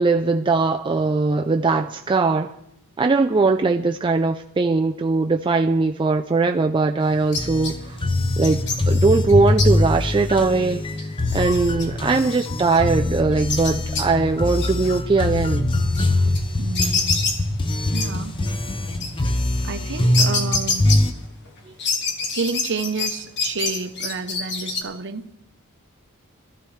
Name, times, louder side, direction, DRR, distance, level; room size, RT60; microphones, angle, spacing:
voice 1, 0.0-2.5 3.0-7.9 8.4-8.6 8.9-10.8 11.3-15.7, right 3 dB, 20° right, 3 dB, 0.4 m, -20 dB
sound 1, 7.0-21.5 21.8-24.8, left 4 dB, 55° left, 1.5 m, -29 dB
sound 2, 7.4-21.1, left 1 dB, 25° left, 0.6 m, -23 dB
voice 2, 16.6-17.2 17.9-18.4 19.6-20.9 22.3-25.3, right 4 dB, 55° right, 9 dB, 0.9 m, -30 dB
19.5 x 13.0 x 3.2 m, 0.81 s
head